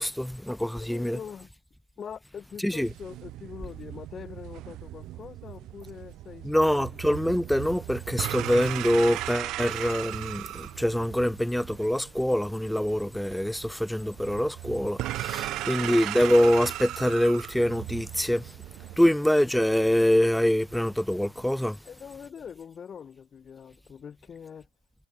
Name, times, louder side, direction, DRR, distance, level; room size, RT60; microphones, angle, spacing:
voice 1, 0.0-1.2 2.6-2.9 6.4-18.5 19.0-21.8, equal, ahead, 0.3 m, -25 dB
voice 2, 0.8-1.5 2.0-6.7 15.6-15.9 19.0-19.2 21.8-24.7, left 7 dB, 20° left, 3.7 m, -43 dB
sound 1, 2.8-19.0, right 15 dB, 35° right, 0.8 m, -37 dB
sound 2, 4.9-21.7, right 20 dB, 50° right, 4.7 m, -59 dB
figure-of-eight pair, 90°, 0 cm